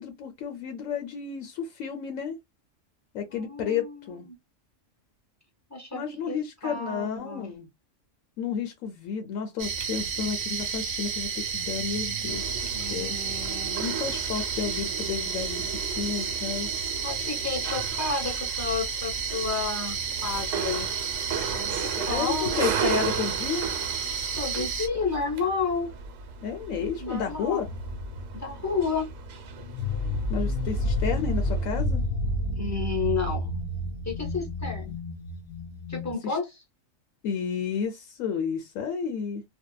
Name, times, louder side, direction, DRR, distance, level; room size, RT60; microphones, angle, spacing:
voice 1, 0.0-2.4 3.1-4.3 5.9-7.7 8.4-13.2 13.8-16.7 21.8-23.7 26.4-27.7 30.3-32.0 36.2-36.4 37.2-39.4, left 7 dB, 85° left, 1.0 m, -32 dB
voice 2, 3.3-4.3 5.7-6.4 6.6-7.5 12.7-13.8 17.0-20.0 20.2-20.9 21.5-23.3 24.3-25.9 26.7-27.6 28.3-29.1 32.6-33.6 34.0-35.0 35.9-36.6, left 4 dB, 15° left, 0.6 m, -31 dB
sound 1, 9.6-24.9, right 6 dB, 55° right, 0.7 m, -31 dB
sound 2, 12.3-31.8, right 6 dB, 80° right, 1.0 m, -36 dB
sound 3, 27.6-36.1, left 1 dB, 65° left, 0.7 m, -30 dB
2.6 x 2.2 x 2.2 m
omnidirectional pair, 1.3 m